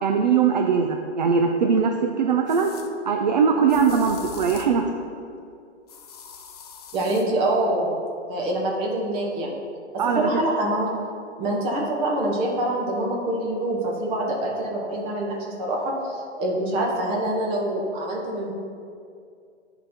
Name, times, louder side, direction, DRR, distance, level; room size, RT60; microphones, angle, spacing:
voice 1, 0.0-2.7 3.1-4.9 10.0-10.4, right 6 dB, 40° right, 4 dB, 0.4 m, -21 dB
sound 1, 1.3-1.4 2.5-2.9 3.7-4.8 5.9-7.3, left 5 dB, 35° left, 0.6 m, -42 dB
voice 2, 6.9-8.0 8.3-9.6 10.2-10.9 11.4-18.5, right 1 dB, 15° right, -2 dB, 1.0 m, -25 dB
10.0 x 3.9 x 4.3 m, 2.4 s
hypercardioid pair, 140°, 36 cm